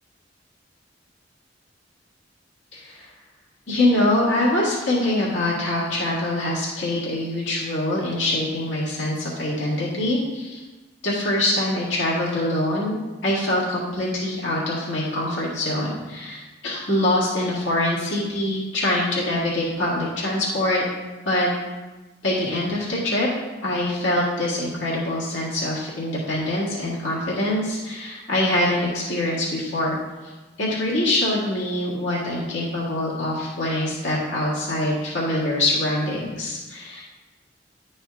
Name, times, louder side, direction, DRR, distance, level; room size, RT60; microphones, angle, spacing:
voice 1, 2.7-3.1 3.7-10.6 11.0-13.0 13.2-20.8 21.2-21.5 22.2-23.3 23.6-30.0 30.2-30.3 30.6-37.0, left 1 dB, 80° left, -6 dB, 1.9 m, -24 dB
10.5 x 4.3 x 3.6 m, 1.2 s
head